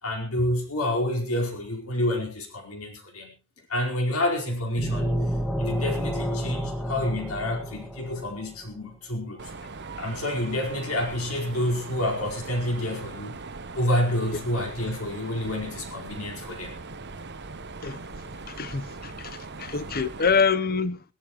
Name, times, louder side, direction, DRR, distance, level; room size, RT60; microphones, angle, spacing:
voice 1, 0.0-3.3 3.7-5.1 5.6-9.5 10.0-13.4 13.7-16.7, left 1 dB, 80° left, 4.8 m, -28 dB
sound 1, 4.8-8.5, equal, 5° left, 1.7 m, -29 dB
Mechanisms, 9.4-20.4, right 3 dB, 55° right, 1.1 m, -40 dB
voice 2, 17.8-21.0, left 5 dB, 45° left, 0.8 m, -26 dB
21.5 x 16.0 x 3.1 m
head